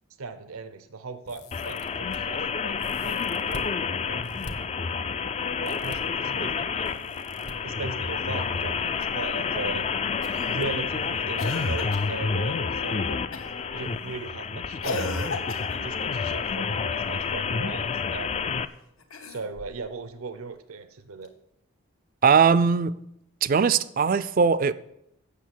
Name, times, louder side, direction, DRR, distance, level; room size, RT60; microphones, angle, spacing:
voice 1, 0.2-2.8 3.0-3.6 4.1-4.4 5.6-7.1 7.6-9.8 10.5-13.3 13.7-15.4 15.7-18.5 19.3-21.3, right 4 dB, 85° right, 0.7 m, -38 dB
sound 1, 1.2-2.2 2.8-3.7 4.2-4.5 5.6-6.0 6.8-7.5 8.7-9.1 9.3-9.4 10.6-10.7 11.1-11.2, left 1 dB, 55° left, 1.1 m, -43 dB
sound 2, 1.5-18.6, left 5 dB, 30° left, 0.3 m, -29 dB
Cough, 10.2-10.6 11.4-12.1 13.3-13.6 14.8-15.9 19.0-19.8 21.2-21.3, left 3 dB, 80° left, 1.4 m, -34 dB
voice 2, 22.2-23.0 23.4-24.7, right 6 dB, 40° right, 0.4 m, -20 dB
8.3 x 6.4 x 7.5 m
head